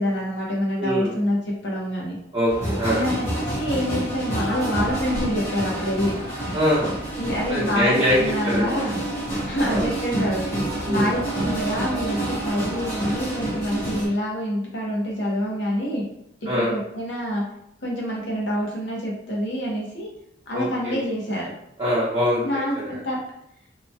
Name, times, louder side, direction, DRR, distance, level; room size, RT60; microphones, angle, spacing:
voice 1, 0.0-2.2 2.9-6.1 7.2-9.0 9.5-10.4 10.9-16.0 16.5-17.4 17.8-20.1 20.5-21.5 22.4-23.2, equal, 80° left, -3 dB, 0.9 m, -26 dB
voice 2, 0.8-1.1 2.3-3.0 6.5-6.9 7.5-8.8 9.7-9.9 10.9-11.1 16.5-16.7 20.5-21.0 21.8-22.5 22.7-22.9, equal, 25° right, -9 dB, 0.7 m, -23 dB
sound 1, 2.5-14.1, right 1 dB, 55° left, 1.2 m, -28 dB
2.8 x 2.2 x 2.7 m, 0.75 s
head